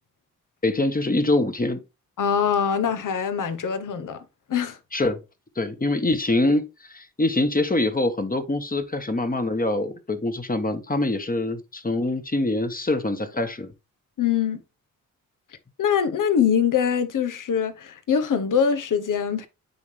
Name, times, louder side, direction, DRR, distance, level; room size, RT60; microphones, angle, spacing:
voice 1, 0.6-1.8 4.9-5.2 5.6-13.7, left 2 dB, 25° left, 1.4 m, -24 dB
voice 2, 2.2-4.2 4.5-4.8 14.2-14.6 15.8-19.5, left 7 dB, 60° left, 1.1 m, -23 dB
9.4 x 3.9 x 3.3 m
supercardioid pair, 55°, 35 cm